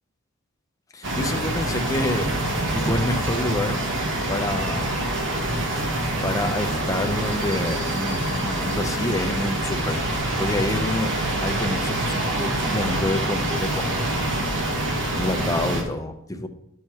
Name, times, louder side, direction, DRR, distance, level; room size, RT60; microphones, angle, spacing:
voice 1, 0.9-2.3 2.7-3.8 4.3-5.0 6.2-10.0 10.4-11.1 11.4-14.2 15.1-16.5, left 2 dB, 15° left, 5 dB, 0.6 m, -28 dB
sound 1, 1.0-15.8, right 1 dB, 60° right, 1.3 m, -25 dB
sound 2, 2.0-4.5, right 3 dB, 25° right, 0.5 m, -36 dB
10.5 x 6.4 x 2.9 m, 0.82 s
head